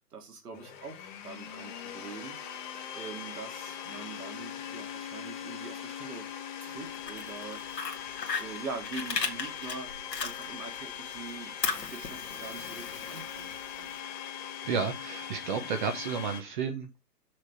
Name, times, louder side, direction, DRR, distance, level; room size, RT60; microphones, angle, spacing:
voice 1, 0.1-2.4 2.9-6.3 6.6-7.6 8.4-9.9 10.2-13.9, right 4 dB, 70° right, 3.0 m, -43 dB
Domestic sounds home sounds, 0.5-16.4, left 9 dB, 30° left, 1.3 m, -41 dB
Fire, 6.9-10.8 11.1-13.9, left 5 dB, 85° left, 1.8 m, -36 dB
voice 2, 14.6-17.1, right 6 dB, 30° right, 1.2 m, -32 dB
6.4 x 6.1 x 4.8 m
hypercardioid pair, 140°, 48 cm